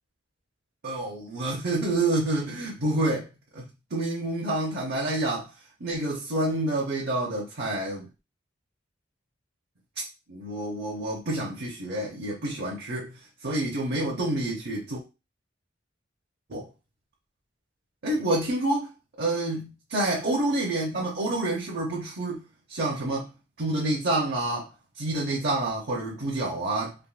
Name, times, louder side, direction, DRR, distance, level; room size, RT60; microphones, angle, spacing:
voice 1, 0.8-3.3 3.5-3.6 3.9-5.5 5.8-8.1 10.3-15.0 16.5-16.7 18.0-18.9 19.2-22.4 22.7-23.3 23.6-24.7 25.0-26.9, right 2 dB, 60° right, 0.7 m, -28 dB
3.5 x 2.2 x 2.4 m
head